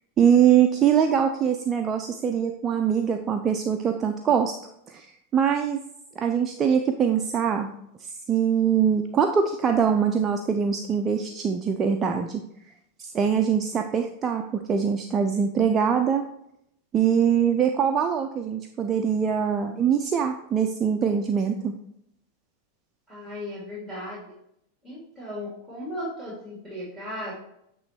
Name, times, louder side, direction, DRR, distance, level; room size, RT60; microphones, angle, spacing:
voice 1, 0.2-4.6 4.9-5.1 5.3-5.8 6.2-7.7 8.0-12.4 13.0-16.2 16.9-21.7, right 7 dB, 25° right, 5 dB, 0.4 m, -23 dB
voice 2, 23.1-24.3 24.8-27.3, left 1 dB, 5° left, -6 dB, 2.5 m, -36 dB
8.7 x 3.1 x 4.3 m, 0.75 s
figure-of-eight pair, 90°, 0 cm